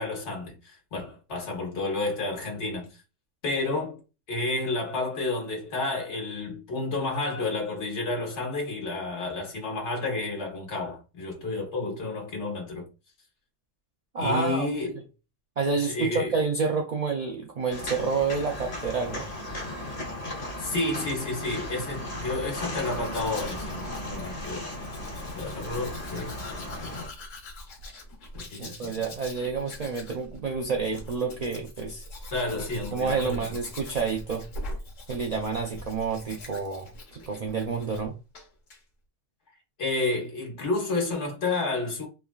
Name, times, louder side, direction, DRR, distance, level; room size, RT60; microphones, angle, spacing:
voice 1, 0.0-3.0 3.4-4.0 4.3-12.9 14.2-15.0 15.8-16.3 20.6-24.7 25.3-27.0 28.3-29.0 32.3-33.5 39.8-42.1, left 2 dB, 70° left, 1.4 m, -31 dB
voice 2, 14.1-14.7 15.6-19.3 28.6-32.0 32.9-34.5 35.1-38.1, right 4 dB, 75° right, 0.3 m, -29 dB
Walk footsteps, 17.7-27.1, left 1 dB, 35° left, 0.8 m, -36 dB
Domestic sounds home sounds, 22.6-38.1 38.3-38.8, left 1 dB, 90° left, 1.3 m, -43 dB
3.3 x 2.4 x 2.2 m
omnidirectional pair, 1.3 m